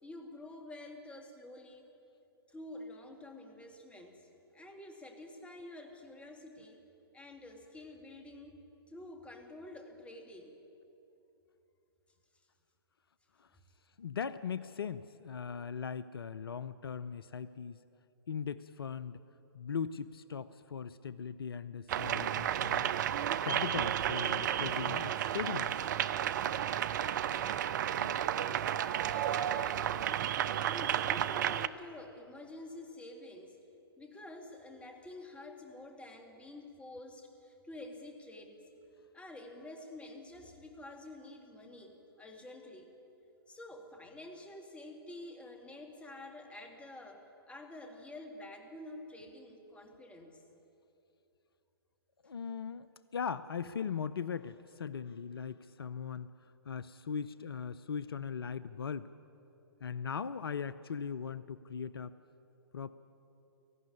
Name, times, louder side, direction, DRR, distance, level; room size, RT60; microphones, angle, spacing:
voice 1, 0.0-1.9 2.5-6.8 7.1-8.6 8.9-10.6 29.0-33.6 34.0-38.6 39.1-42.9 43.5-50.4, left 1 dB, 10° left, 3 dB, 2.1 m, -49 dB
voice 2, 14.0-17.8 18.3-19.2 19.5-22.9 23.4-25.8 28.0-28.3 52.2-56.3 56.7-59.1 59.8-62.2 62.7-62.9, left 6 dB, 70° left, 15 dB, 0.6 m, -39 dB
sound 1, 21.9-31.7, right 10 dB, 50° right, 0.6 m, -32 dB
18.0 x 15.0 x 9.8 m, 2.9 s
figure-of-eight pair, 120°, 13 cm